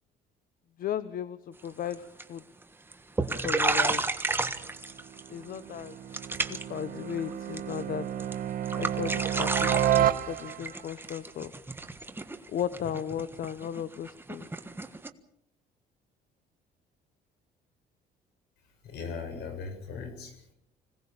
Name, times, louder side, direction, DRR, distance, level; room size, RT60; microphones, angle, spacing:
voice 1, 0.8-2.4 3.4-4.1 5.3-6.0 6.5-8.1 8.8-11.5 12.5-14.5, left 9 dB, 60° left, 14 dB, 1.0 m, -35 dB
sound 1, 1.6-1.9 2.2-2.6 2.9-3.0 3.2-5.3 5.5-5.9 6.1-6.8 7.1-7.8 8.2-8.4 8.7-15.1, right 3 dB, 15° right, 1.4 m, -32 dB
sound 2, 4.4-10.8, right 11 dB, 60° right, 1.5 m, -31 dB
voice 2, 18.8-20.5, left 5 dB, 75° left, 7 dB, 7.3 m, -39 dB
26.0 x 18.0 x 7.1 m, 0.75 s
cardioid pair, 110°, 17 cm